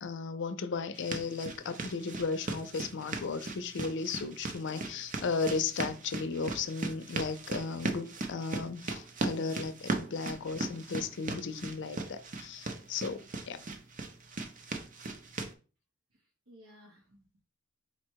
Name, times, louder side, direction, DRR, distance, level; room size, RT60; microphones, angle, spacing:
voice 1, 0.0-13.6, left 4 dB, 60° left, 0.5 m, -35 dB
sound 1, 0.9-15.5, right 3 dB, 40° right, 0.6 m, -38 dB
voice 2, 16.1-17.4, equal, 85° right, 1.0 m, -58 dB
4.3 x 2.2 x 4.5 m
head